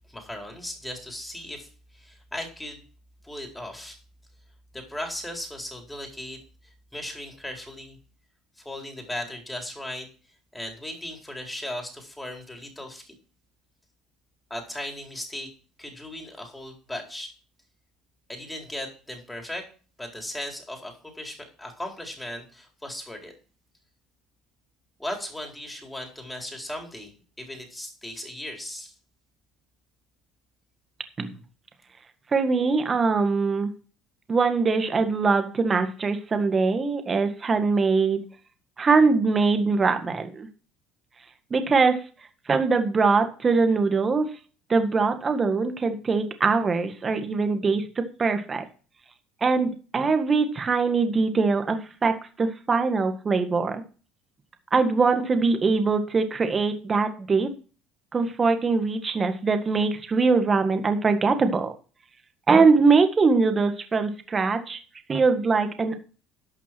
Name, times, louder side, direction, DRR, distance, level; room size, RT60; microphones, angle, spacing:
voice 1, 0.1-2.8 3.2-4.0 4.7-8.0 8.6-10.1 10.5-13.1 14.5-15.5 15.8-17.3 18.3-19.7 20.0-23.3 25.0-27.1 27.4-28.9, left 1 dB, 10° left, 2 dB, 4.2 m, -37 dB
voice 2, 32.3-33.7 34.3-38.2 38.8-40.5 41.5-42.0 42.5-44.3 44.7-48.6 49.4-53.8 54.7-57.5 58.1-61.7 62.5-64.8 65.1-66.1, right 4 dB, 30° right, 7 dB, 1.8 m, -22 dB
12.0 x 6.0 x 6.1 m, 0.38 s
supercardioid pair, 80°, 0 cm